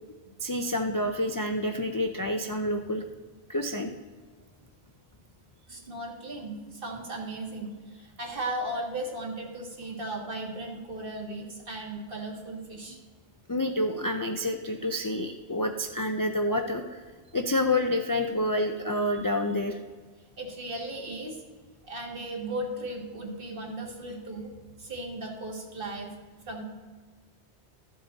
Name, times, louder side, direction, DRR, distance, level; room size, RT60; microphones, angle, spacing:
voice 1, 0.4-3.0 3.5-3.9 13.5-17.0 17.3-19.8, left 1 dB, 30° left, 4 dB, 0.4 m, -28 dB
voice 2, 5.7-13.0 20.4-21.4 21.8-24.5 24.8-26.1 26.5-26.6, right 1 dB, 50° right, 1 dB, 1.8 m, -36 dB
13.5 x 7.5 x 4.0 m, 1.5 s
omnidirectional pair, 1.2 m